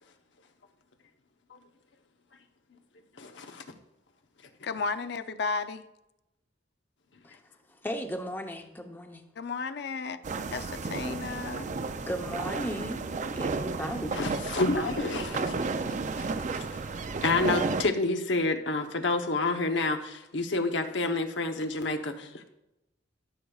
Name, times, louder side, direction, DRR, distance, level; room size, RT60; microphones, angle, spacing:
voice 1, 3.2-3.6 14.1-16.8 17.2-22.5, left 3 dB, 80° left, 5 dB, 0.9 m, -29 dB
voice 2, 4.6-5.8 9.4-10.2 10.5-11.7, left 4 dB, 65° left, 11 dB, 0.5 m, -33 dB
voice 3, 7.8-9.2 12.0-13.1 13.3-14.2, equal, 10° left, 4 dB, 0.8 m, -35 dB
sound 1, 10.2-17.8, right 4 dB, 40° right, 0.4 m, -32 dB
13.5 x 6.9 x 2.4 m, 0.89 s
head